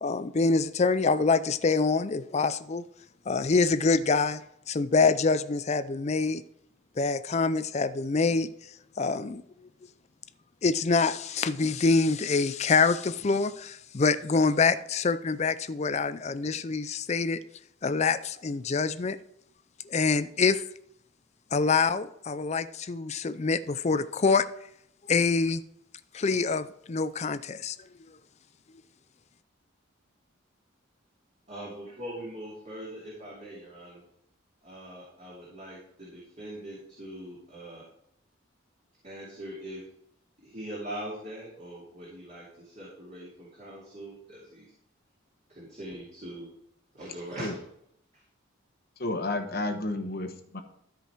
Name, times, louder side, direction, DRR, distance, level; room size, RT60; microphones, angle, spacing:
voice 1, 0.0-2.8 3.3-6.4 7.0-8.5 9.0-9.4 10.6-17.4 17.8-19.2 19.8-20.6 21.5-24.5 25.1-25.6 26.1-27.8, left 4 dB, 35° left, 13 dB, 0.4 m, -25 dB
voice 2, 31.5-34.0 34.6-37.9 39.0-39.8 40.4-44.7 45.5-46.5 46.9-47.7 48.1-48.2, right 1 dB, 35° right, -6 dB, 2.7 m, -42 dB
voice 3, 49.0-50.6, left 2 dB, 50° left, 6 dB, 1.1 m, -31 dB
13.0 x 5.2 x 4.5 m, 0.73 s
head